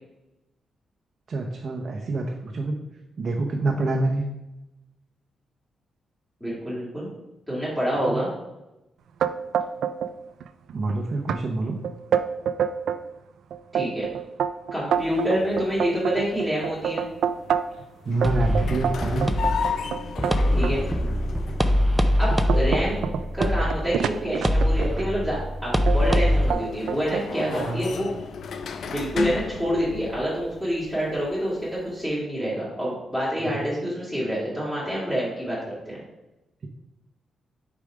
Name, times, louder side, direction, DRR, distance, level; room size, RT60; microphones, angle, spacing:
voice 1, 1.3-2.8 3.2-4.2 8.1-8.2 10.7-11.8 17.7-19.3 27.5-27.8 33.4-33.7, right 2 dB, 45° right, 2 dB, 0.7 m, -27 dB
voice 2, 6.4-7.1 7.5-8.3 13.7-14.0 14.7-17.0 20.5-20.8 22.2-23.0 23.3-28.1 28.9-35.6 35.9-36.0, equal, 10° left, -9 dB, 2.2 m, -27 dB
sound 1, 9.2-10.1 10.4-10.9 11.3-11.4 11.8-13.0 13.5-17.8 18.2-20.8 21.4-21.5 22.0-25.1 25.9-26.2 26.5-27.3, right 8 dB, 80° right, 0.3 m, -27 dB
sound 2, 15.0-32.0, left 5 dB, 65° left, 0.5 m, -36 dB
sound 3, 18.2-26.5, equal, 10° right, 0.4 m, -23 dB
5.2 x 4.7 x 4.9 m, 0.98 s
cardioid pair, 110°, 0 cm